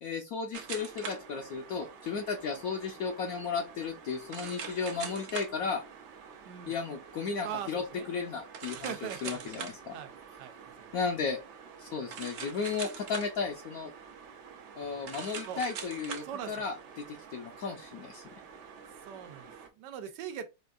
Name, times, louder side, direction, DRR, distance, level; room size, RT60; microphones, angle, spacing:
voice 1, 0.0-5.8 6.7-10.0 10.9-11.4 11.8-13.9 14.8-16.7 17.1-18.2, left 5 dB, 70° left, 0.9 m, -34 dB
sound 1, 0.5-19.7, right 6 dB, 70° right, 0.6 m, -45 dB
voice 2, 6.5-6.8 7.4-8.1 8.7-10.9 14.8-15.2 15.5-15.6 16.2-16.6 19.0-20.4, right 9 dB, 85° right, 1.2 m, -42 dB
4.3 x 2.3 x 2.3 m
omnidirectional pair, 1.8 m